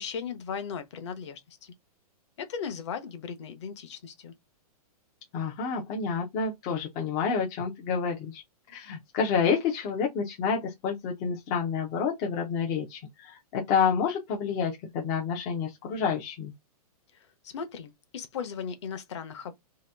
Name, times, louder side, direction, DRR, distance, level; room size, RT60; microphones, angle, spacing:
voice 1, 0.0-1.7 2.4-4.3 17.1-19.5, left 6 dB, 50° left, 0.7 m, -37 dB
voice 2, 5.3-8.4 8.7-16.5, left 6 dB, 15° left, 0.4 m, -29 dB
2.8 x 2.2 x 3.3 m
hypercardioid pair, 170°, 20 cm